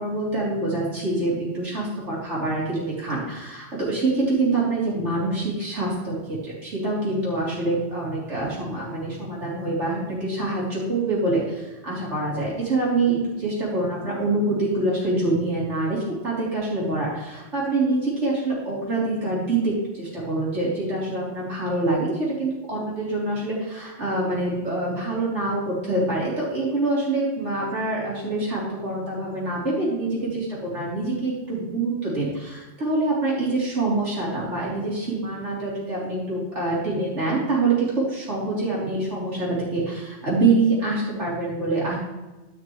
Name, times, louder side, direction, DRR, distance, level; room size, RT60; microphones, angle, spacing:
voice 1, 0.0-42.0, right 2 dB, 75° right, -6 dB, 3.6 m, -25 dB
14.0 x 5.8 x 3.1 m, 1.1 s
omnidirectional pair, 1.2 m